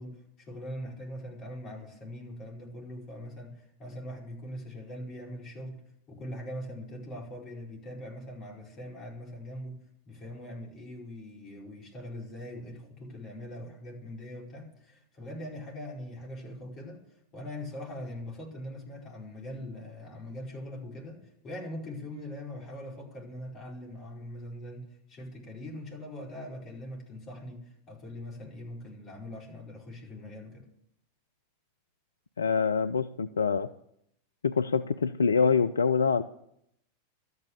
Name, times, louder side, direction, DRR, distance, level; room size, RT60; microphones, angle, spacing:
voice 1, 0.0-5.8 6.1-17.0 17.3-21.2 21.4-30.6, left 1 dB, 30° left, -1 dB, 4.9 m, -42 dB
voice 2, 32.4-33.7 34.4-36.2, left 5 dB, 70° left, 12 dB, 0.4 m, -25 dB
13.0 x 9.5 x 8.2 m, 0.74 s
figure-of-eight pair, 90°, 0 cm